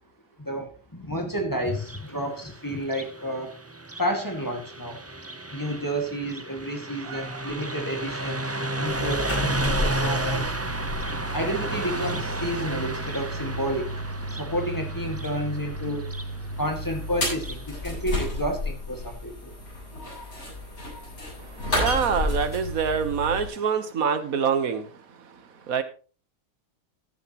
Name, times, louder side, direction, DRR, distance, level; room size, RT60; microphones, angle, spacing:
voice 1, 0.4-3.6 4.0-5.0 5.5-10.6 11.3-14.0 14.3-16.1 16.6-19.5, equal, 15° left, 3 dB, 2.0 m, -31 dB
Car passing by, 1.7-17.7, right 2 dB, 15° right, 0.5 m, -33 dB
voice 2, 7.0-7.5 21.4-25.8, right 6 dB, 75° right, 10 dB, 1.6 m, -27 dB
sound 1, 8.9-23.5, left 1 dB, 80° left, 8.4 m, -32 dB
15.0 x 10.5 x 3.0 m, 0.36 s
omnidirectional pair, 1.5 m